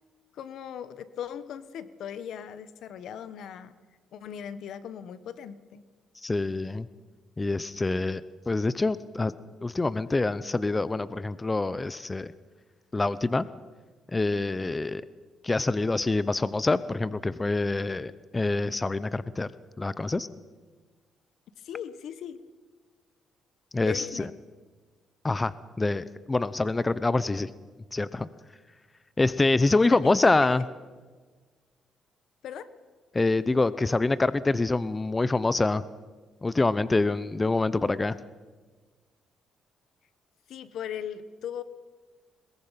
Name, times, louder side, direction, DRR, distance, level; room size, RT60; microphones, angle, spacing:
voice 1, 0.3-3.7 4.1-5.8 21.6-22.4 23.8-24.4 29.7-30.1 30.4-30.5 32.4-32.7 40.5-41.6, left 9 dB, 75° left, 14 dB, 1.2 m, -38 dB
voice 2, 6.2-6.9 7.4-8.2 8.5-9.3 9.6-12.3 12.9-13.5 14.1-15.0 15.4-19.5 19.8-20.3 23.7-24.2 25.2-25.5 25.8-27.5 27.9-28.3 29.2-30.6 33.1-35.8 36.4-38.2, left 3 dB, 20° left, 16 dB, 0.7 m, -25 dB
21.5 x 21.5 x 5.8 m, 1.4 s
cardioid pair, 90°, 0 cm